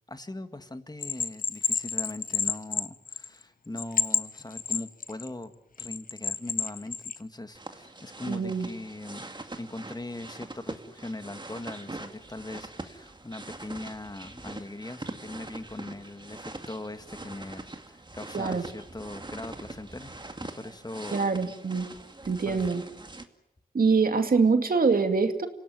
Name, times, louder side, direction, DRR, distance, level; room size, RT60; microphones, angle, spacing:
voice 1, 0.1-5.5 5.8-9.2 9.6-20.1 20.4-21.2 22.5-22.6, left 2 dB, 25° left, 9 dB, 1.9 m, -40 dB
Bell, 1.0-3.4 3.8-5.3 5.8-7.2, left 5 dB, 55° left, 1.2 m, -29 dB
sound 1, 7.5-23.2, right 2 dB, 30° right, 2.3 m, -43 dB
voice 2, 8.3-8.7 18.3-18.6 21.1-21.9 22.3-22.8 23.7-25.5, right 4 dB, 60° right, 7 dB, 2.4 m, -24 dB
26.5 x 17.5 x 9.5 m, 0.92 s
cardioid pair, 50°, 17 cm